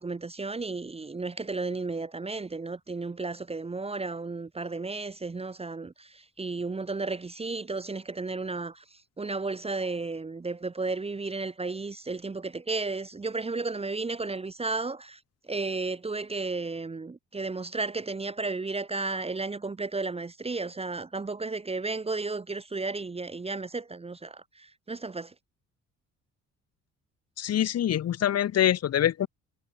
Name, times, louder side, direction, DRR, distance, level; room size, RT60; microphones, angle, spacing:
voice 1, 0.0-15.2 15.5-25.3, right 3 dB, 20° right, 1.0 m, -33 dB
voice 2, 27.4-29.3, left 11 dB, 55° left, 1.0 m, -25 dB
cardioid pair, 90°, 30 cm